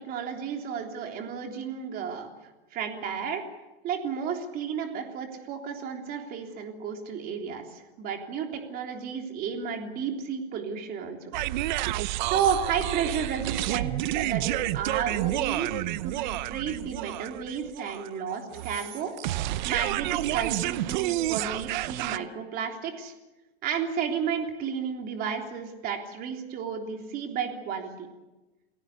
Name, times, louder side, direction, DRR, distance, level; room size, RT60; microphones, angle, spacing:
voice 1, 0.0-2.3 2.7-3.4 3.8-11.4 11.9-15.7 16.0-19.1 19.6-23.1 23.6-28.1, right 7 dB, 30° right, 3 dB, 3.5 m, -32 dB
sound 1, 11.3-22.2, right 15 dB, 45° right, 0.8 m, -30 dB
28.5 x 18.0 x 8.4 m, 1.1 s
supercardioid pair, 155°, 32 cm